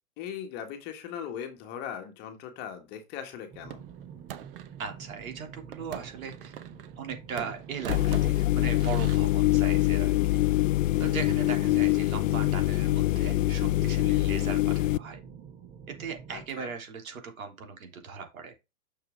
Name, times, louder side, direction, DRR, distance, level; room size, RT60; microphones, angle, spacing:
voice 1, 0.2-3.8 16.3-16.7, left 8 dB, 25° left, 1.4 m, -39 dB
sound 1, 3.5-16.5, right 6 dB, 20° right, 0.8 m, -47 dB
sound 2, 3.7-4.8 5.7-7.1 7.4-9.2, right 11 dB, 40° right, 0.9 m, -42 dB
voice 2, 4.8-6.5 7.0-10.4 11.0-15.2 15.9-18.5, right 5 dB, 85° right, 3.6 m, -38 dB
sound 3, 7.9-15.0, left 16 dB, 65° left, 0.5 m, -24 dB
6.8 x 6.6 x 3.7 m
hypercardioid pair, 160°, 41 cm